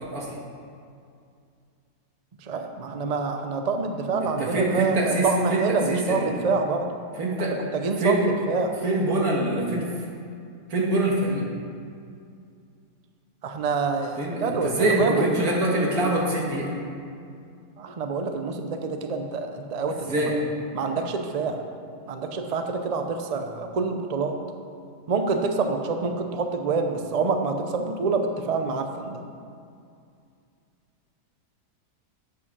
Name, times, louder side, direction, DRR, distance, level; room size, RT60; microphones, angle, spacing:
voice 1, 2.4-6.9 7.7-8.2 8.5-8.7 13.4-15.3 17.8-20.3 20.7-21.6 22.1-24.4 25.1-29.2, right 4 dB, 85° right, 5 dB, 0.3 m, -27 dB
voice 2, 4.2-6.3 7.2-7.5 8.0-8.2 8.8-9.9 10.7-11.4 14.2-16.7 20.1-20.3, right 1 dB, 70° right, -2 dB, 2.0 m, -24 dB
8.6 x 6.3 x 6.0 m, 2.4 s
omnidirectional pair, 1.7 m